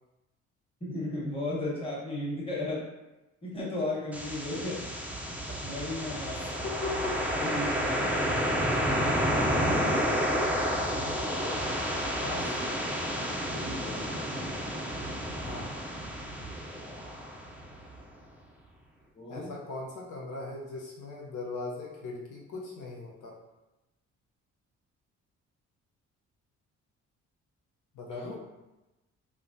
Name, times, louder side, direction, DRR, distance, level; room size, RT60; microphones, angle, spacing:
voice 1, 0.8-2.8 3.4-4.8 5.6-6.5 7.4-10.1 11.3-11.6 12.4-12.9 13.4-14.6 19.1-19.5 28.1-28.4, left 2 dB, 20° left, -6 dB, 1.1 m, -36 dB
sound 1, 4.1-18.0, equal, 5° right, 0.4 m, -30 dB
voice 2, 6.3-7.3 12.2-12.5 15.4-15.7 19.3-23.3 27.9-28.4, left 3 dB, 85° left, -2 dB, 0.6 m, -39 dB
3.1 x 2.1 x 2.5 m, 1.0 s
cardioid pair, 90°, 30 cm